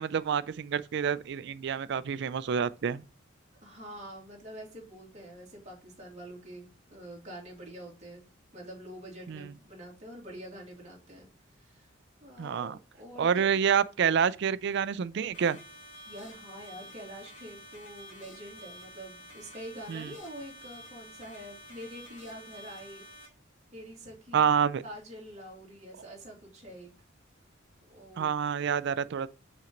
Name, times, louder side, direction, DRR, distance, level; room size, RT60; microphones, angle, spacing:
voice 1, 0.0-3.0 9.3-9.5 12.4-12.8 13.2-15.6 19.9-20.1 24.3-24.8 28.2-29.3, right 7 dB, 60° right, 0.4 m, -28 dB
voice 2, 3.6-8.2 8.5-11.3 11.5-11.9 12.2-13.6 16.1-23.1 23.7-24.6 24.8-26.9 27.9-28.3, equal, 35° right, 2.4 m, -46 dB
sound 1, 15.3-23.3, equal, 90° left, 2.4 m, -50 dB
5.9 x 3.8 x 4.4 m
head